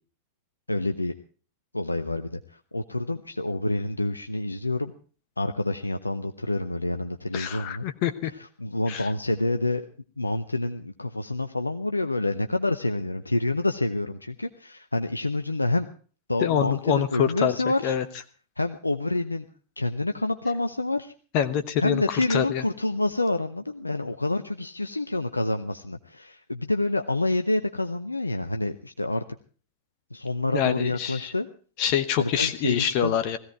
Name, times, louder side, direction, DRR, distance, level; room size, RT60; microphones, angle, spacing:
voice 1, 0.7-1.1 1.7-4.9 5.4-7.8 8.2-9.9 10.2-15.9 16.3-18.0 18.6-19.4 19.8-21.1 21.8-29.2 30.1-31.5 32.2-33.2, left 2 dB, 85° left, 8 dB, 0.7 m, -28 dB
voice 2, 7.3-8.3 8.9-9.1 16.4-17.5 17.8-18.0 21.3-22.6 30.5-31.3 31.8-33.4, left 9 dB, 45° left, 10 dB, 1.0 m, -25 dB
17.5 x 15.5 x 4.6 m, 0.40 s
figure-of-eight pair, 90°, 0 cm